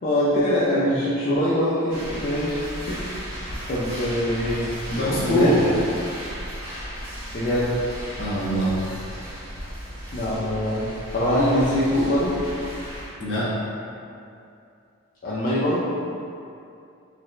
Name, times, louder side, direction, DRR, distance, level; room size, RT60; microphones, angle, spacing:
voice 1, 0.0-2.6 2.9-3.2 3.7-4.7 5.2-5.7 7.3-7.8 10.1-12.4 15.2-15.8, equal, 40° left, -10 dB, 0.4 m, -23 dB
sound 1, 1.9-13.1, equal, 50° right, 1.3 m, -35 dB
voice 2, 4.9-5.6 8.2-8.8 13.2-13.5, equal, 60° left, -9 dB, 0.9 m, -23 dB
2.8 x 2.5 x 3.1 m, 2.6 s
head